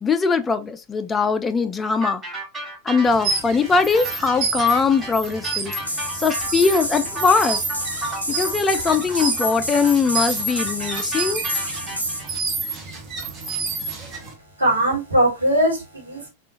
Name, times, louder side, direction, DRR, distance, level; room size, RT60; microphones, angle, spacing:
voice 1, 0.0-2.2 2.8-5.7 6.1-7.6 8.3-11.4, left 5 dB, 15° left, 0.4 m, -21 dB
sound 1, 2.0-12.3, right 2 dB, 15° right, 1.5 m, -33 dB
sound 2, 3.1-14.3, right 3 dB, 30° right, 1.0 m, -29 dB
sound 3, 5.8-12.2, equal, 90° right, 1.0 m, -30 dB
voice 2, 14.6-16.3, right 1 dB, 75° right, 1.3 m, -20 dB
3.6 x 2.4 x 2.8 m
figure-of-eight pair, 90°, 0 cm